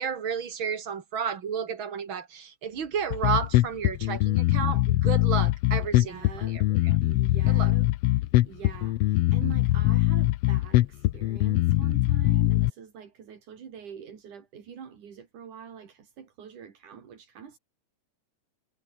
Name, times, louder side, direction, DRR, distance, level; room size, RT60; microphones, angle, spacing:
voice 1, 0.0-6.3 6.5-6.6 7.5-7.7, right 7 dB, 45° right, 2.6 m, -32 dB
Bass guitar, 3.1-12.7, left 16 dB, 85° left, 1.4 m, -22 dB
voice 2, 5.9-6.6 7.0-7.9 8.1-17.6, right 7 dB, 80° right, 4.5 m, -44 dB
omnidirectional pair, 3.5 m